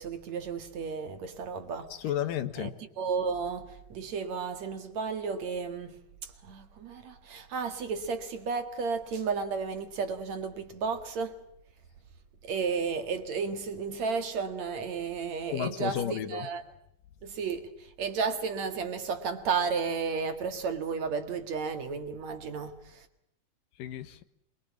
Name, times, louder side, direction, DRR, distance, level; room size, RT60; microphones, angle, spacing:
voice 1, 0.0-1.9 2.5-6.0 6.5-11.3 12.4-16.6 17.2-17.7 18.0-23.1, right 5 dB, 55° right, 2.9 m, -33 dB
voice 2, 2.0-2.7 15.5-16.5 23.8-24.2, left 10 dB, 70° left, 2.8 m, -32 dB
26.5 x 23.5 x 7.2 m
omnidirectional pair, 4.1 m